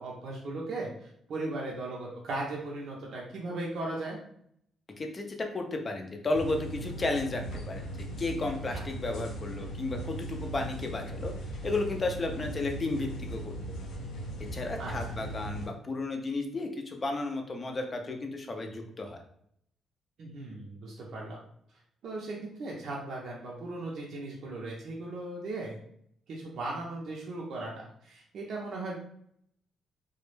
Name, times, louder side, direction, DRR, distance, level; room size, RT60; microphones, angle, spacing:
voice 1, 0.0-4.2 8.7-8.8 14.8-14.9 20.2-21.4 22.0-25.8 26.3-29.0, right 2 dB, 65° right, -4 dB, 0.5 m, -37 dB
voice 2, 5.0-11.3 11.6-13.5 14.5-19.2, left 2 dB, 35° left, 4 dB, 0.5 m, -33 dB
sound 1, 6.3-15.7, right 1 dB, 90° left, 0.5 m, -38 dB
2.2 x 2.0 x 3.1 m, 0.68 s
cardioid pair, 90°, 0 cm